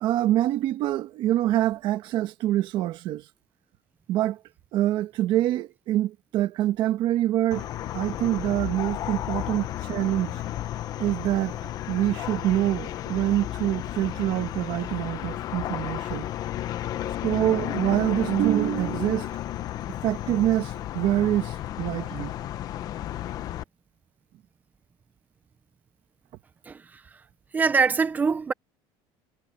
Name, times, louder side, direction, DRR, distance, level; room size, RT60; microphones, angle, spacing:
voice 1, 0.0-3.2 4.1-4.4 4.7-7.6 7.9-10.4 11.0-16.3 17.2-19.4 20.0-22.3, right 13 dB, 50° right, 1.4 m, -25 dB
sound 1, 7.5-23.6, left 12 dB, 35° left, 0.9 m, -33 dB
voice 2, 26.7-27.0 27.5-28.5, right 5 dB, 15° right, 0.5 m, -23 dB
cardioid pair, 175°, 11 cm